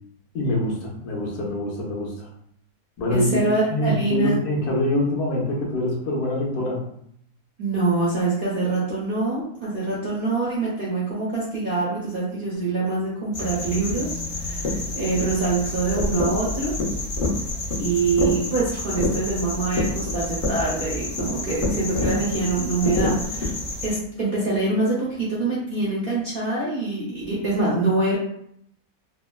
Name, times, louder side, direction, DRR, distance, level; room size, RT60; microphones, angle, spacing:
voice 1, 0.3-2.3 3.0-3.4 3.7-6.8, left 1 dB, 75° left, -2 dB, 1.2 m, -25 dB
voice 2, 3.1-4.4 7.6-16.8 17.8-23.5 23.8-28.2, right 3 dB, 55° right, -7 dB, 0.6 m, -25 dB
sound 1, 13.3-24.0, left 2 dB, 45° left, 0.7 m, -27 dB
3.3 x 2.1 x 2.2 m, 0.69 s
omnidirectional pair, 1.7 m